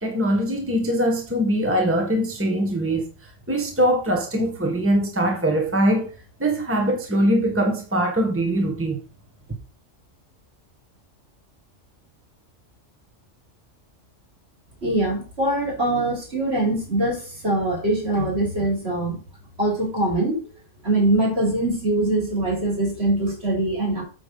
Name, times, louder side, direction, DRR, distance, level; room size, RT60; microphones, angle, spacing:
voice 1, 0.0-6.1 6.4-9.0, right 1 dB, 10° right, 1.4 m, -22 dB
voice 2, 14.8-19.2 19.6-20.4 20.8-24.0, right 1 dB, 55° right, 3.5 m, -23 dB
8.6 x 3.6 x 6.8 m
omnidirectional pair, 1.3 m